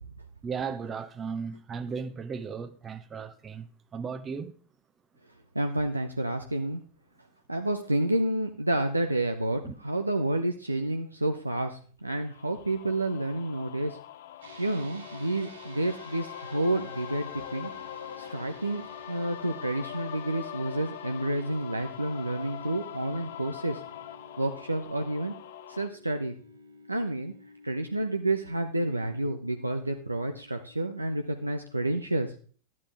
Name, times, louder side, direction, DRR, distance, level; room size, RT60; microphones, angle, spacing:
voice 1, 0.4-4.5 9.6-9.7, right 5 dB, 20° right, 0.9 m, -36 dB
voice 2, 5.5-6.8 7.5-14.0 14.6-17.7 18.2-18.8 19.1-23.8 24.4-25.3 25.7-26.3 26.9-27.3 27.6-32.3, right 1 dB, 85° right, 0.7 m, -29 dB
sound 1, 12.3-25.9, left 12 dB, 55° left, 0.5 m, -43 dB
sound 2, 14.4-31.8, left 1 dB, 60° right, 3.6 m, -51 dB
11.5 x 9.7 x 3.5 m
figure-of-eight pair, 90°, 0 cm